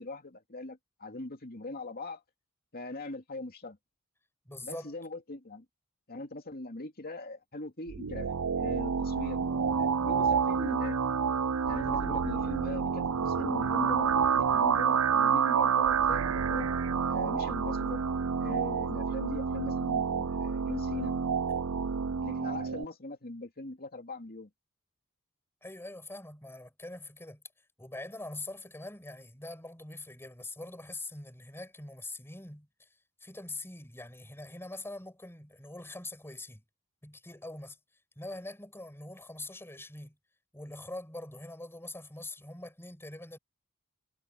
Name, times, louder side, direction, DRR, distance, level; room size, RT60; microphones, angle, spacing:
voice 1, 0.0-2.2 2.7-3.8 4.6-5.6 6.1-9.4 9.8-11.0 11.6-16.7 17.1-18.0 18.4-21.1 22.2-24.5, left 2 dB, 45° left, 2.6 m, -41 dB
voice 2, 4.4-4.9 25.6-27.4 27.8-32.9 33.2-36.6 37.0-37.8 38.2-40.2 40.5-43.4, left 2 dB, 10° left, 6.5 m, -43 dB
sound 1, 7.9-22.8, right 6 dB, 70° right, 0.6 m, -28 dB
head